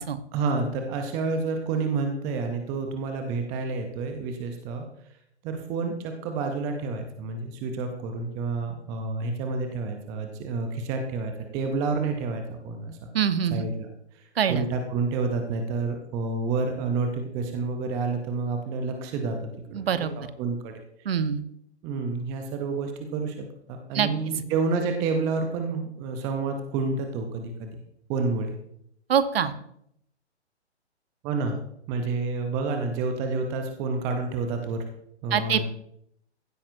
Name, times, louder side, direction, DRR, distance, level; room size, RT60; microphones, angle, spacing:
voice 1, 0.3-4.8 5.4-13.1 13.5-13.7 14.1-19.4 19.7-20.8 21.8-27.8 28.1-28.5 31.2-31.6 31.9-34.8 35.2-35.7, right 4 dB, 10° right, 5 dB, 0.4 m, -29 dB
voice 2, 13.1-13.7 14.4-14.6 19.7-20.1 21.0-21.4 23.9-24.1 29.1-29.5 35.3-35.7, right 8 dB, 60° right, 12 dB, 1.0 m, -24 dB
15.5 x 8.5 x 2.5 m, 0.71 s
figure-of-eight pair, 130°, 34 cm